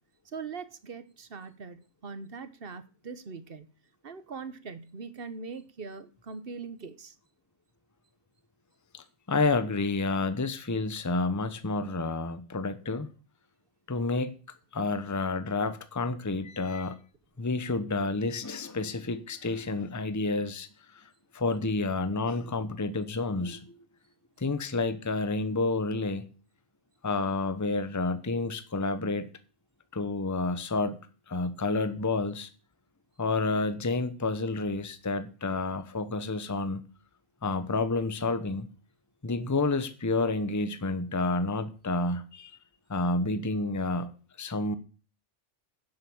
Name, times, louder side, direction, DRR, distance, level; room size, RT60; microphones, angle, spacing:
voice 1, 0.2-3.7 4.0-7.1, right 5 dB, 50° right, 1.3 m, -41 dB
voice 2, 8.9-13.1 13.9-14.3 14.7-17.0 17.4-23.8 24.4-26.3 27.0-29.3 29.9-31.0 31.3-32.5 33.2-36.9 37.4-38.7 39.2-42.6 42.9-44.1 44.4-44.8, left 3 dB, 15° left, 0.9 m, -30 dB
10.5 x 7.9 x 7.1 m
omnidirectional pair, 1.2 m